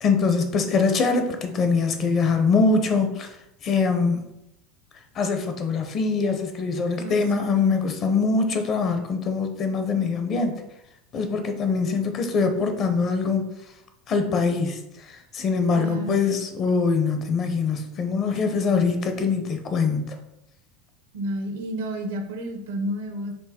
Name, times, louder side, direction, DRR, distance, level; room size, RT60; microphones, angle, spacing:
voice 1, 0.0-3.3 3.6-4.2 5.2-10.5 11.1-13.4 14.1-14.8 15.3-20.1, left 4 dB, 35° left, 6 dB, 0.7 m, -23 dB
voice 2, 7.0-7.7 15.7-16.2 21.1-23.3, equal, 85° right, 4 dB, 0.9 m, -31 dB
4.5 x 2.6 x 4.3 m, 0.84 s
supercardioid pair, 125°, 0 cm